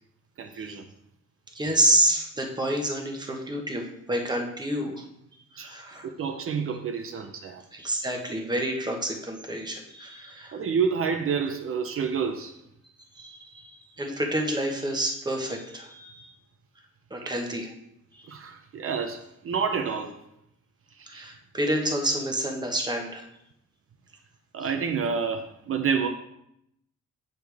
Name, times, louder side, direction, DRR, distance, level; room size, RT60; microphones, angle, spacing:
voice 1, 0.4-0.9 5.6-5.7 6.0-7.6 10.5-12.6 17.2-17.3 18.3-20.2 21.0-21.3 24.5-26.1, right 6 dB, 50° right, 5 dB, 0.6 m, -29 dB
voice 2, 1.5-5.0 5.5-6.1 7.7-10.6 13.1-16.3 17.1-17.7 21.1-23.2, right 1 dB, 15° right, 2 dB, 1.2 m, -28 dB
8.2 x 6.7 x 3.4 m, 0.77 s
cardioid pair, 145°, 29 cm